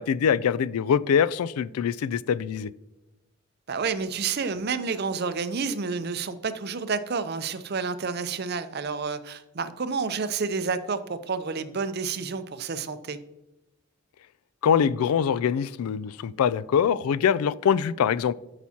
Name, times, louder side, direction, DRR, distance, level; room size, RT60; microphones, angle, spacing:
voice 1, 0.0-2.7 14.6-18.3, left 7 dB, 85° left, 0.3 m, -23 dB
voice 2, 3.7-13.2, right 5 dB, 45° right, 0.5 m, -30 dB
12.5 x 5.9 x 2.8 m
head